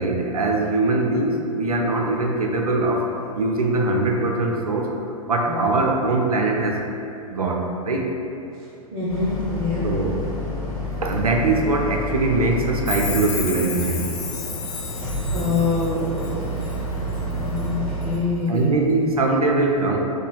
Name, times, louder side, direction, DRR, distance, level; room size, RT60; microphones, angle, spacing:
voice 1, 0.0-3.1 3.3-4.9 5.3-6.8 7.3-8.1 9.8-10.2 11.0-14.1 18.5-20.0, right 2 dB, 80° right, 1 dB, 0.5 m, -22 dB
voice 2, 8.5-9.9 14.9-16.5 17.4-18.8, left 3 dB, 25° right, -9 dB, 0.9 m, -26 dB
Boat Water vehicle, 9.1-18.2, equal, 85° left, 0.8 m, -29 dB
Chime, 12.9-16.8 17.1-17.7 18.0-18.1, left 7 dB, 20° left, 0.4 m, -33 dB
5.4 x 3.1 x 2.2 m, 2.7 s
figure-of-eight pair, 100°, 19 cm